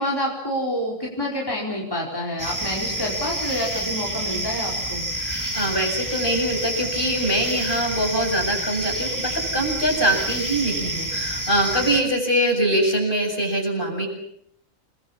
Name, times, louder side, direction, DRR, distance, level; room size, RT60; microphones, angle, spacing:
voice 1, 0.0-5.0, equal, 15° left, -3 dB, 4.9 m, -28 dB
sound 1, 2.4-12.0, right 1 dB, 15° right, 3.7 m, -28 dB
voice 2, 5.1-14.1, right 1 dB, 40° left, 2 dB, 7.8 m, -23 dB
29.5 x 22.0 x 7.4 m, 0.72 s
omnidirectional pair, 1.4 m